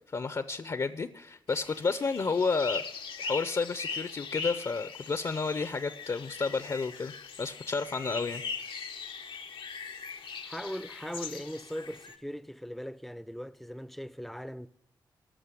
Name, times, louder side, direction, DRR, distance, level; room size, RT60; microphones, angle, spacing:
voice 1, 0.1-2.8 3.2-7.1 7.4-8.4, left 4 dB, 45° left, 0.6 m, -31 dB
sound 1, 1.5-12.2, left 5 dB, 80° left, 0.8 m, -40 dB
voice 2, 10.4-14.7, equal, ahead, 0.5 m, -39 dB
14.0 x 6.3 x 7.6 m
cardioid pair, 70°, 9 cm